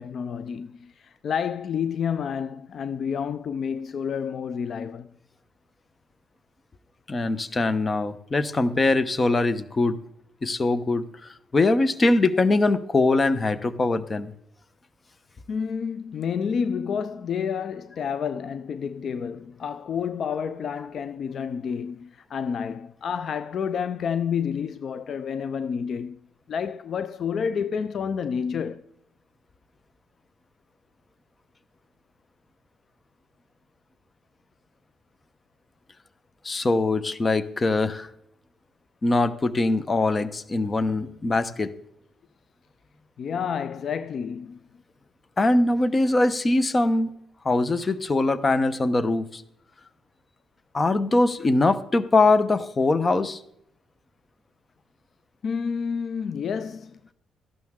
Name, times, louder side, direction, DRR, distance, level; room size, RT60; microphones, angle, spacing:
voice 1, 0.0-5.1 15.5-26.2 26.5-28.8 43.2-44.6 55.4-57.1, left 7 dB, 60° left, 0.5 m, -29 dB
voice 2, 7.1-10.0 10.4-11.0 11.5-14.3 36.4-38.1 39.0-41.7 45.4-47.1 47.4-49.4 50.7-53.4, left 2 dB, 30° left, 0.9 m, -22 dB
14.5 x 11.5 x 3.7 m
cardioid pair, 90°, 0 cm